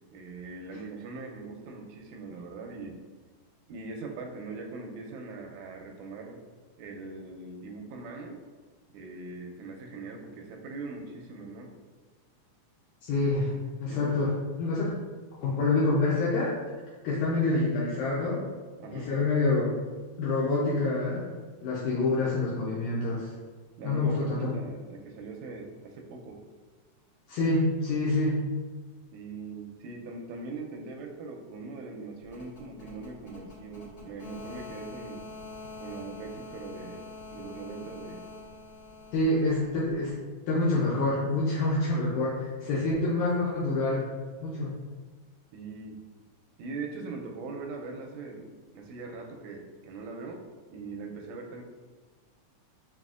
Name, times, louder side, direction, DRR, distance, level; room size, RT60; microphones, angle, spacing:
voice 1, 0.1-3.0 3.7-6.4 6.8-8.4 8.9-11.7 13.9-14.1 18.8-19.1 23.8-26.4 29.1-35.2 35.8-37.0 37.3-38.2 45.5-46.0 46.6-50.4 50.7-51.6, right 3 dB, 80° right, 1 dB, 1.7 m, -41 dB
voice 2, 13.0-13.5 13.8-14.9 15.4-16.5 17.0-18.5 18.9-19.7 20.2-21.3 21.6-23.3 23.8-24.5 27.3-28.4 39.1-40.1 40.5-44.0 44.4-44.7, left 2 dB, 80° left, -6 dB, 2.0 m, -27 dB
sound 1, 32.2-40.1, left 2 dB, 40° left, 1.2 m, -45 dB
5.5 x 2.3 x 2.4 m, 1.4 s
omnidirectional pair, 3.6 m